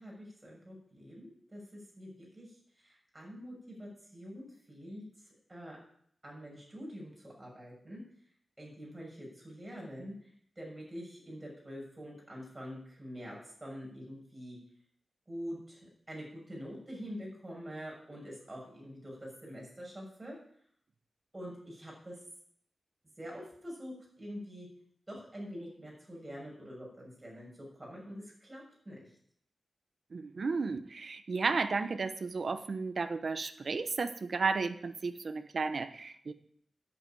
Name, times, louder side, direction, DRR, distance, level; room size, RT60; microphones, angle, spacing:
voice 1, 0.0-2.5 2.8-5.0 5.5-5.8 6.2-8.0 8.6-10.1 10.6-14.6 15.3-20.3 21.3-22.2 23.2-24.7 25.1-27.5 27.8-29.1, equal, 15° right, -3 dB, 6.6 m, -45 dB
voice 2, 30.1-36.3, right 4 dB, 50° right, 9 dB, 1.0 m, -33 dB
10.5 x 8.8 x 9.2 m, 0.66 s
wide cardioid pair, 135°, 0 cm